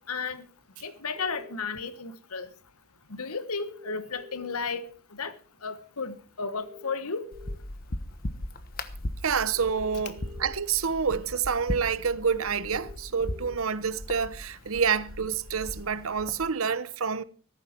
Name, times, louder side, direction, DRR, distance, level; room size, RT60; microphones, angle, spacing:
voice 1, 0.1-0.4 0.8-2.5 3.1-4.8 5.1-5.3 5.6-7.3, left 4 dB, 80° left, 1.3 m, -33 dB
sound 1, 1.1-1.6 3.5-4.6 6.5-7.6 9.5-10.6 12.5-13.6, left 3 dB, 45° right, 1.7 m, -47 dB
sound 2, 7.3-16.5, left 1 dB, 40° left, 1.2 m, -38 dB
voice 2, 9.2-17.2, right 6 dB, 70° right, 0.8 m, -28 dB
15.5 x 13.5 x 4.5 m
head